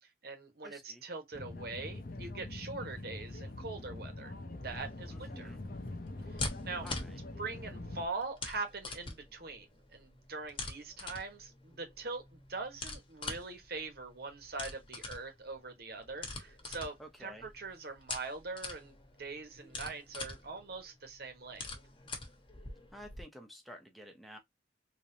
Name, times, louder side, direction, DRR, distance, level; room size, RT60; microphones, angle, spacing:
voice 1, 0.0-4.3 4.6-5.5 6.3-6.9 7.4-21.7, right 3 dB, 55° right, 1.3 m, -42 dB
voice 2, 0.6-1.0 5.1-5.6 6.8-7.2 17.0-17.5 22.9-24.4, equal, ahead, 1.0 m, -51 dB
sound 1, 1.3-8.1, left 2 dB, 50° left, 0.8 m, -44 dB
sound 2, 4.6-23.2, left 3 dB, 30° left, 1.2 m, -45 dB
3.7 x 3.2 x 2.7 m
head